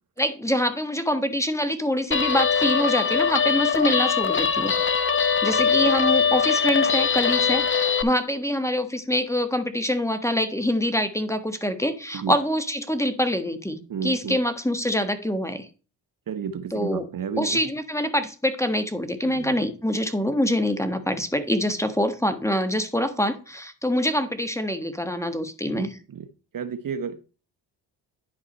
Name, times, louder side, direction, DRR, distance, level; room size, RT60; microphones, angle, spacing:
voice 1, 0.2-4.8 5.4-15.7 16.7-17.1 17.4-25.9, equal, 5° left, 9 dB, 1.3 m, -25 dB
Guitar, 2.1-8.0, left 6 dB, 25° left, 0.9 m, -22 dB
voice 2, 13.9-14.4 16.3-17.6 19.2-19.5 25.7-26.3 26.5-27.2, right 7 dB, 45° right, 10 dB, 1.0 m, -32 dB
10.5 x 4.9 x 4.1 m, 0.34 s
supercardioid pair, 55°, 45 cm